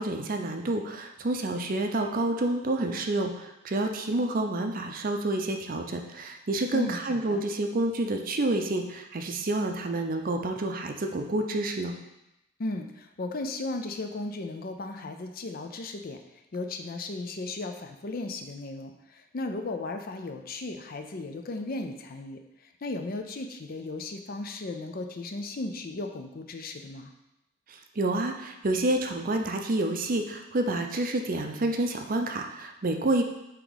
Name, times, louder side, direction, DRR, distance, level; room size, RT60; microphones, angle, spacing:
voice 1, 0.0-11.9 28.0-33.2, right 2 dB, 40° right, 4 dB, 0.5 m, -28 dB
voice 2, 6.7-7.4 12.6-16.2 16.5-27.1, left 2 dB, 45° left, 6 dB, 0.5 m, -36 dB
8.2 x 3.0 x 4.0 m, 0.90 s
head